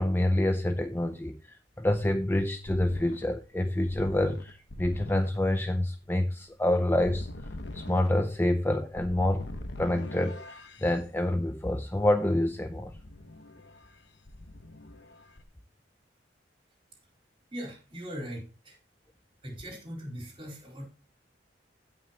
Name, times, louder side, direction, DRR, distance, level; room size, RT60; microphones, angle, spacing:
voice 1, 0.0-7.3 7.7-9.5 9.8-12.9, left 1 dB, 10° left, 7 dB, 0.6 m, -27 dB
sound 1, 2.6-10.9 12.8-14.0 14.3-15.4, left 1 dB, 65° left, 1.1 m, -42 dB
voice 2, 17.5-18.8 19.4-20.9, equal, 30° right, 0 dB, 4.3 m, -40 dB
16.5 x 6.1 x 2.9 m, 0.31 s
head